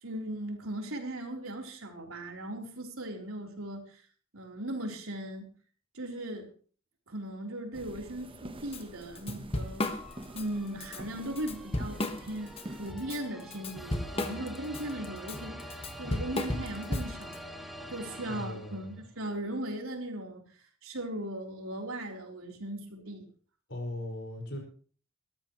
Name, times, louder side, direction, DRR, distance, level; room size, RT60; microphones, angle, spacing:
voice 1, 0.0-4.0 4.3-5.5 5.9-6.5 7.1-9.9 10.3-17.4 17.9-23.3, right 1 dB, 90° right, 2 dB, 3.8 m, -38 dB
sound 1, 7.7-12.9, right 1 dB, 25° right, 1.1 m, -46 dB
Drum kit / Drum, 8.7-8.8 9.1-10.4 10.8-11.0 11.4-12.6 13.0-17.4, left 1 dB, 30° left, 1.5 m, -34 dB
sound 2, 9.6-19.1, equal, ahead, 2.1 m, -46 dB
voice 2, 18.3-19.0 23.7-24.6, left 1 dB, 60° left, 2 dB, 5.7 m, -38 dB
22.0 x 13.5 x 3.2 m, 0.42 s
head